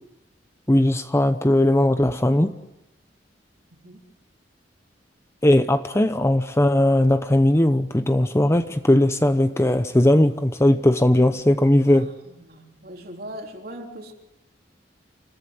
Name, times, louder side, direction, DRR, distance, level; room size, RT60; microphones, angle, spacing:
voice 1, 0.7-2.5 5.4-12.1, left 1 dB, 15° left, 10 dB, 0.8 m, -18 dB
voice 2, 11.9-14.1, equal, 55° right, 2 dB, 3.7 m, -40 dB
28.5 x 15.0 x 9.7 m, 0.93 s
head